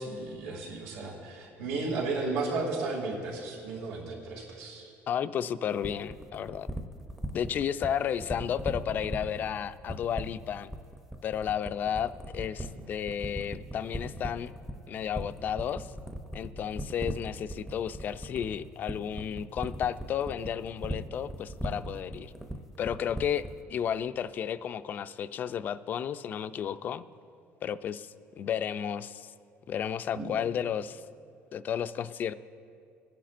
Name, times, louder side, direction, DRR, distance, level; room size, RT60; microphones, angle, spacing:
voice 1, 0.0-4.9 30.2-30.3, right 3 dB, 80° right, -2 dB, 2.5 m, -34 dB
voice 2, 5.1-6.7 7.3-10.7 11.2-14.5 14.9-15.9 16.3-22.3 22.8-27.1 27.6-29.3 29.7-31.0 31.5-32.3, left 9 dB, 40° left, 14 dB, 0.3 m, -33 dB
sound 1, 5.8-23.6, equal, 5° right, 0.6 m, -37 dB
21.0 x 10.0 x 2.5 m, 2.4 s
cardioid pair, 150°, 5 cm